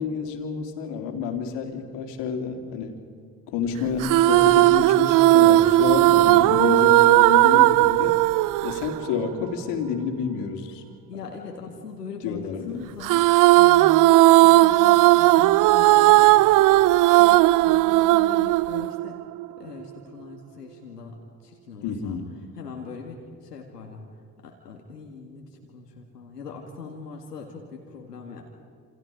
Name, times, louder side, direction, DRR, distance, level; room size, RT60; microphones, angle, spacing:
voice 1, 0.0-3.0 3.5-8.2 8.6-10.8 12.2-12.8 21.8-22.3, left 6 dB, 60° left, 4 dB, 3.3 m, -29 dB
sound 1, 4.0-9.5 13.0-19.4, right 17 dB, 45° right, 0.5 m, -16 dB
voice 2, 11.1-19.2 19.6-22.2 22.5-24.1 24.4-28.4, left 5 dB, 85° left, 1 dB, 2.1 m, -41 dB
28.0 x 28.0 x 5.1 m, 2.1 s
figure-of-eight pair, 55°, 47 cm